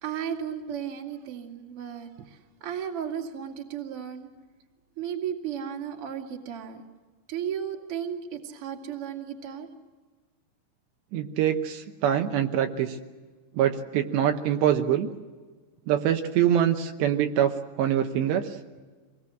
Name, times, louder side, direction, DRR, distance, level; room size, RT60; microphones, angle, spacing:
voice 1, 0.0-4.3 5.0-6.8 7.3-9.7, right 8 dB, 40° right, 1 dB, 2.4 m, -34 dB
voice 2, 11.1-13.0 13.5-15.1 15.9-18.6, right 10 dB, 75° right, 5 dB, 3.0 m, -24 dB
26.0 x 20.0 x 7.7 m, 1.4 s
omnidirectional pair, 5.3 m